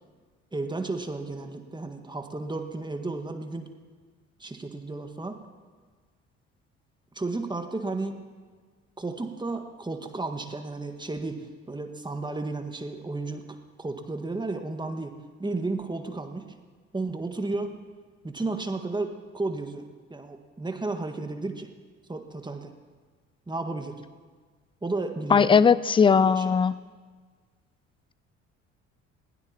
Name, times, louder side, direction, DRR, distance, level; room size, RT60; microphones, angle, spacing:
voice 1, 0.5-3.7 4.4-5.4 7.1-8.3 9.0-16.6 16.9-17.8 18.2-19.8 20.1-21.7 22.1-22.7 23.5-23.9 24.8-25.6 26.1-26.6, right 3 dB, 10° right, 6 dB, 1.7 m, -33 dB
voice 2, 25.3-26.7, left 6 dB, 15° left, 19 dB, 0.4 m, -19 dB
20.5 x 16.5 x 3.0 m, 1.5 s
figure-of-eight pair, 50°, 37 cm